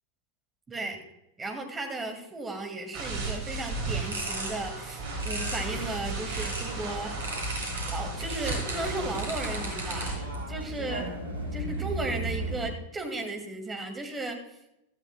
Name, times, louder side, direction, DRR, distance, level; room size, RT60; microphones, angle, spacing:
voice 1, 1.4-7.2 7.9-11.0 11.5-14.4, right 2 dB, 15° right, 5 dB, 2.1 m, -35 dB
sound 1, 2.9-10.1, right 3 dB, 45° right, 3.0 m, -35 dB
sound 2, 3.7-6.8 7.2-10.4, right 2 dB, 65° right, 3.4 m, -38 dB
sound 3, 5.0-12.7, right 1 dB, 90° left, 4.8 m, -36 dB
15.5 x 13.0 x 2.2 m, 0.86 s
figure-of-eight pair, 90°, 0 cm